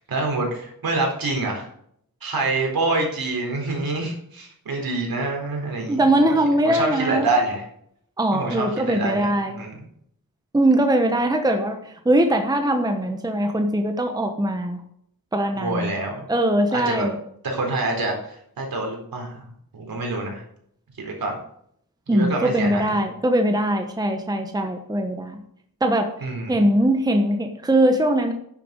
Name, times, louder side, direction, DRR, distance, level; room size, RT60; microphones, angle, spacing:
voice 1, 0.0-1.7 2.2-6.3 6.6-7.6 8.3-9.8 15.6-16.2 16.7-17.1 17.4-19.5 19.7-20.4 21.0-21.4 22.1-23.0 26.2-26.5, right 2 dB, 75° right, 1 dB, 4.3 m, -26 dB
voice 2, 5.9-7.3 8.2-9.6 10.5-14.8 15.3-15.9 16.3-17.2 22.1-25.4 25.8-26.1 26.5-28.3, right 1 dB, 10° right, 5 dB, 1.1 m, -21 dB
10.5 x 7.6 x 6.4 m, 0.68 s
wide cardioid pair, 180°, 36 cm